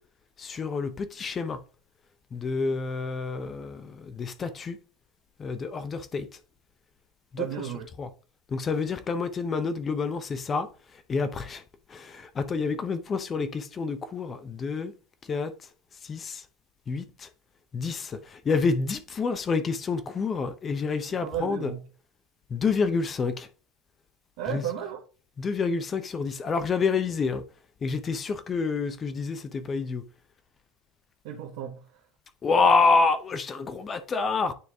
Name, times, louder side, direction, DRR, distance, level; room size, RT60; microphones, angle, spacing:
voice 1, 0.4-1.6 2.3-4.8 5.4-6.3 7.3-7.5 8.0-8.1 8.5-10.7 11.1-11.6 11.9-14.9 15.3-15.5 16.0-16.4 16.9-17.3 17.7-21.7 22.5-23.5 24.5-24.6 25.4-27.4 27.8-30.0 32.4-34.5, left 4 dB, 30° left, 0.6 m, -28 dB
voice 2, 7.4-7.9 21.2-21.8 24.4-25.0 31.2-31.8, right 9 dB, 70° right, 1.0 m, -33 dB
9.5 x 3.2 x 3.5 m
supercardioid pair, 110°, 0 cm